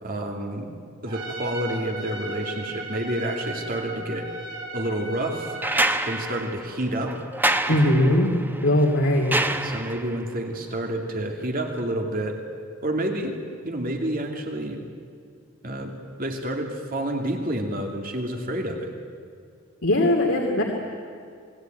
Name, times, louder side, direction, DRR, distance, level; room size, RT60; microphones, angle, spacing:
voice 1, 0.0-0.7 1.0-4.3 4.7-5.6 6.0-7.2 7.7-8.2 9.6-12.4 12.8-14.8 15.6-15.9 16.2-18.9, right 1 dB, 45° right, 3 dB, 2.6 m, -29 dB
Trumpet, 1.1-6.3, right 2 dB, 65° right, 7.5 m, -36 dB
sound 1, 5.6-10.2 11.8-11.9, right 1 dB, 10° right, 1.1 m, -27 dB
voice 2, 7.7-8.3 8.6-9.4 19.8-20.6, left 1 dB, 70° left, 0 dB, 2.6 m, -20 dB
28.0 x 20.5 x 9.2 m, 2.4 s
head